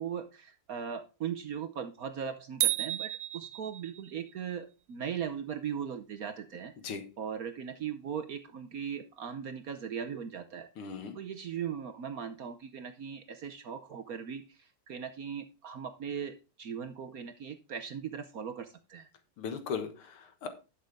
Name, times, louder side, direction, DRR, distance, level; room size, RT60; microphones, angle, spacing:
voice 1, 0.0-6.7 7.2-10.7 11.1-19.1, right 8 dB, 70° right, 8 dB, 0.8 m, -39 dB
sound 1, 2.6-4.2, right 15 dB, 90° right, 1.9 m, -32 dB
voice 2, 10.8-11.2 19.4-20.5, left 6 dB, 75° left, 7 dB, 2.3 m, -37 dB
11.5 x 6.5 x 3.4 m, 0.30 s
omnidirectional pair, 2.4 m